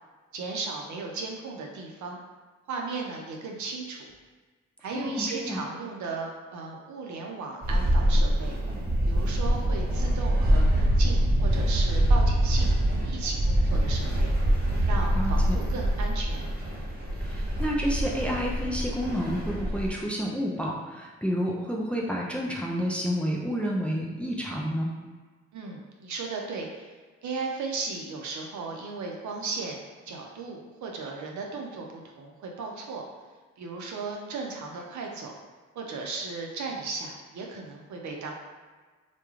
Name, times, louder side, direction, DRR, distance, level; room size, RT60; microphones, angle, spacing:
voice 1, 0.3-2.2 2.7-4.0 4.8-8.5 9.0-14.3 14.8-16.5 25.5-26.9 27.2-29.8 30.1-31.9 32.2-33.0 33.6-35.3 35.7-38.3, right 4 dB, 60° right, 0 dB, 0.6 m, -36 dB
voice 2, 4.9-5.6 15.2-15.6 17.2-24.9, equal, 5° left, -2 dB, 0.5 m, -30 dB
sound 1, 7.6-19.9, right 1 dB, 30° right, 1.0 m, -24 dB
2.3 x 2.2 x 3.0 m, 1.4 s
hypercardioid pair, 45°, 34 cm